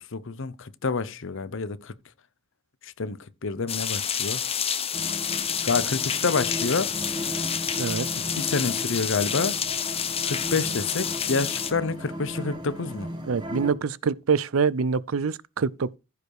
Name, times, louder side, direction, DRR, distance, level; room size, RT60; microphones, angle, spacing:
voice 1, 0.1-1.9 2.8-4.4 5.6-6.9 8.3-9.6 10.2-13.1, left 4 dB, 65° left, 0.8 m, -28 dB
sound 1, 3.7-11.7, left 8 dB, 30° left, 0.9 m, -29 dB
sound 2, 4.9-13.7, equal, 25° right, 2.2 m, -36 dB
voice 2, 13.3-16.0, right 5 dB, 85° right, 0.5 m, -25 dB
15.0 x 5.0 x 4.8 m
head